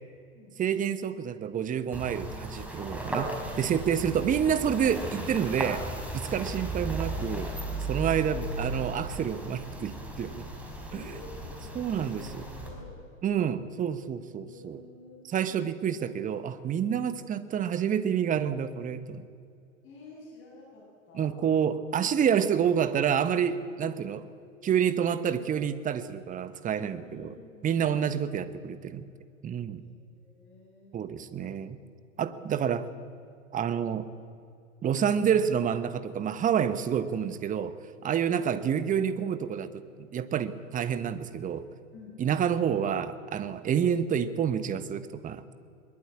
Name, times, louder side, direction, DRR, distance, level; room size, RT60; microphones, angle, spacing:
voice 1, 0.6-5.9 6.1-7.5 7.9-10.5 10.9-11.0 11.7-12.4 13.2-14.8 15.3-19.2 21.1-24.3 24.6-27.3 27.6-29.1 29.4-29.8 30.9-31.8 32.2-32.9 33.5-34.1 34.8-37.7 38.0-41.7 42.2-45.4, right 8 dB, 20° right, 13 dB, 1.2 m, -28 dB
sound 1, 1.9-12.7, right 1 dB, 5° right, 5.0 m, -36 dB
voice 2, 8.2-8.6 10.9-13.0 14.4-15.6 19.8-21.4 27.0-28.1 29.8-31.3 41.9-42.7, left 2 dB, 30° left, -3 dB, 7.5 m, -50 dB
21.5 x 21.5 x 8.6 m, 2.5 s
figure-of-eight pair, 100°, 39 cm